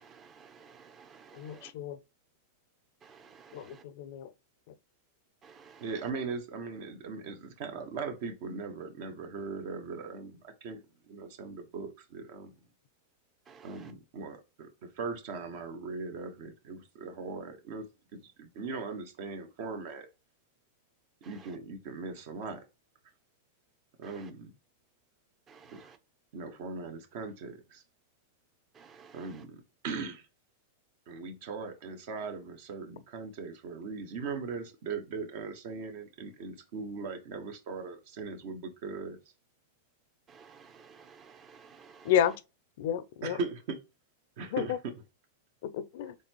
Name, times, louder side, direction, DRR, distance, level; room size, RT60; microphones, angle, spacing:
voice 1, 0.0-1.7 3.0-3.8 5.4-6.1 13.5-13.9 21.2-21.6 24.0-24.3 25.5-26.0 28.7-29.5 40.3-42.4, right 6 dB, 25° right, 0.7 m, -55 dB
voice 2, 1.4-2.0 3.5-4.3 42.0-42.3 42.8-43.4 44.5-44.6 45.6-46.1, left 10 dB, 65° left, 0.4 m, -30 dB
voice 3, 5.8-10.8 11.1-12.5 13.6-17.9 18.1-20.1 21.3-22.6 24.0-24.5 25.7-25.9 26.3-27.8 29.1-30.3 31.1-39.2 43.2-43.8 44.4-44.9, right 4 dB, 60° right, 1.1 m, -39 dB
4.1 x 3.2 x 2.9 m
hypercardioid pair, 125°, 0 cm